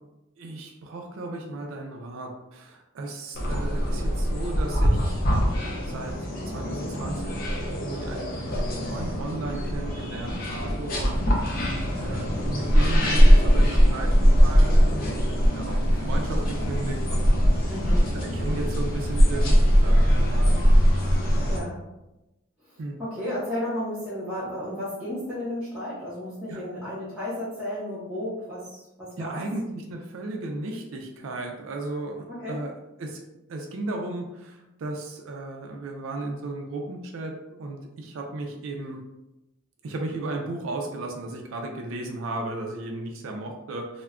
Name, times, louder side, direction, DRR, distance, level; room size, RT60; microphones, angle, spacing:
voice 1, 0.4-5.2 5.8-11.7 12.0-17.3 17.6-17.7 18.1-20.6 22.8-23.0 26.5-26.6 29.2-32.7 33.0-33.2 33.5-39.0 39.8-44.0, right 2 dB, 75° right, 1 dB, 0.4 m, -35 dB
sound 1, 3.3-21.6, equal, 45° left, 0.5 m, -21 dB
voice 2, 17.7-18.0 21.5-21.8 23.0-29.4 32.3-32.6, left 1 dB, 5° right, -11 dB, 0.6 m, -33 dB
2.2 x 2.1 x 3.5 m, 0.97 s
head